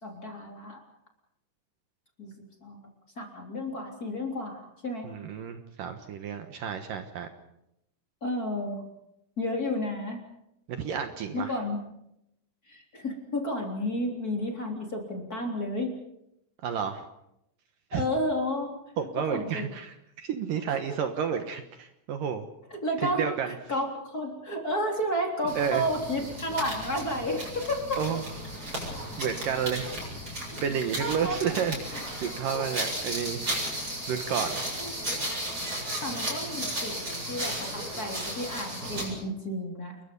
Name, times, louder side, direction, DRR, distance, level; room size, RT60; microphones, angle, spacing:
voice 1, 0.0-0.8 2.2-2.3 2.6-2.9 3.2-5.1 8.2-8.8 9.4-10.2 11.3-11.8 12.7-15.9 17.9-18.7 19.2-19.7 20.7-21.0 22.7-28.0 31.0-31.6 32.5-32.7 34.8-35.2 36.0-40.0, left 1 dB, 25° left, 2 dB, 3.5 m, -32 dB
voice 2, 5.0-7.3 10.7-11.5 16.6-17.1 17.9-18.1 19.0-22.5 23.0-23.6 25.6-25.8 28.0-28.3 28.7-28.9 29.2-30.0 30.6-33.4 34.1-34.6, right 7 dB, 65° right, 7 dB, 2.6 m, -31 dB
sound 1, 25.5-39.2, right 1 dB, 20° right, 8.1 m, -35 dB
29.5 x 22.0 x 5.4 m, 0.81 s
omnidirectional pair, 4.6 m